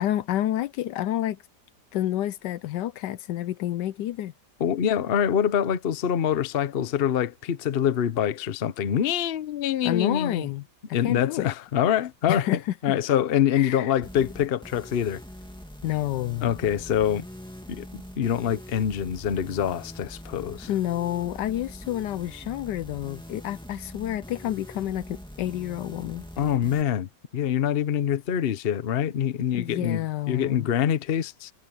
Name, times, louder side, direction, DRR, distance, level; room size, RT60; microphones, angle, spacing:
voice 1, 0.0-1.4 1.9-4.3 9.8-10.6 11.0-11.5 12.3-12.7 13.5-13.9 15.8-16.5 20.7-26.3 29.5-30.7, left 13 dB, 75° left, 1.2 m, -29 dB
voice 2, 4.6-10.5 10.9-15.2 16.4-17.2 17.7-20.7 26.4-30.0 30.3-31.5, left 9 dB, 50° left, 0.8 m, -25 dB
sound 1, 14.0-26.8, equal, 5° left, 2.3 m, -43 dB
omnidirectional pair, 2.0 m